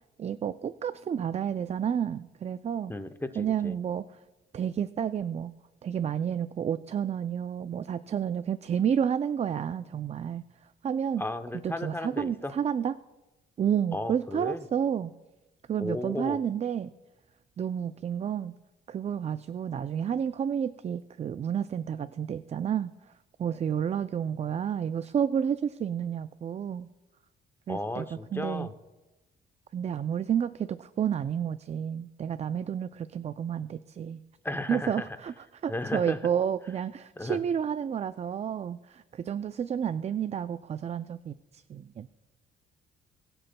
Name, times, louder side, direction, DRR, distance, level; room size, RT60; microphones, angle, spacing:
voice 1, 0.2-2.9 3.4-4.0 4.5-5.5 5.8-10.4 10.8-11.2 11.6-12.9 13.6-15.1 15.7-16.9 17.6-18.5 18.9-22.9 23.4-26.9 27.7-28.1 28.3-28.7 29.7-34.2 34.7-35.3 35.6-42.1, right 8 dB, 35° right, 13 dB, 0.3 m, -30 dB
voice 2, 2.9-3.8 11.2-12.5 13.9-14.6 15.8-16.4 27.7-28.7 34.4-35.2 35.7-36.3 37.2-37.4, left 1 dB, 10° left, 9 dB, 0.6 m, -34 dB
21.0 x 7.7 x 2.2 m, 1.1 s
cardioid pair, 90°, 20 cm